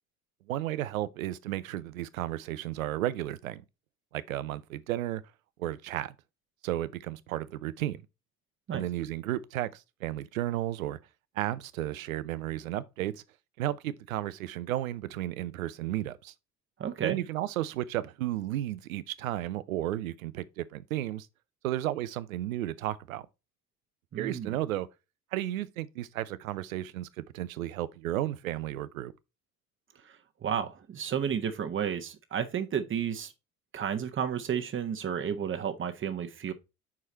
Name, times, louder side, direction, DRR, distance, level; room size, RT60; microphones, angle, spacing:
voice 1, 0.5-3.6 4.1-5.2 5.6-6.1 6.6-8.0 8.7-11.0 11.4-13.2 13.6-16.3 17.0-21.3 21.6-23.3 24.2-24.9 25.3-29.1, right 14 dB, 75° right, 0.6 m, -33 dB
voice 2, 16.8-17.2 24.1-24.5 30.0-33.3 33.7-36.5, right 8 dB, 30° right, 1.2 m, -32 dB
6.0 x 4.7 x 4.1 m
figure-of-eight pair, 60°, 41 cm